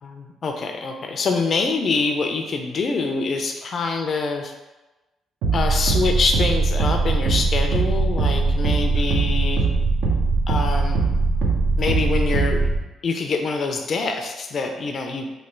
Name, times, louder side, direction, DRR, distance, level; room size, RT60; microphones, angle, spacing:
voice 1, 0.0-4.5 5.5-9.7 10.5-11.0 11.8-12.7 13.0-15.3, left 4 dB, 50° left, 4 dB, 0.4 m, -25 dB
sound 1, 5.4-12.8, right 3 dB, 85° right, 0.6 m, -21 dB
3.1 x 2.2 x 4.3 m, 1.1 s
cardioid pair, 90°, 0 cm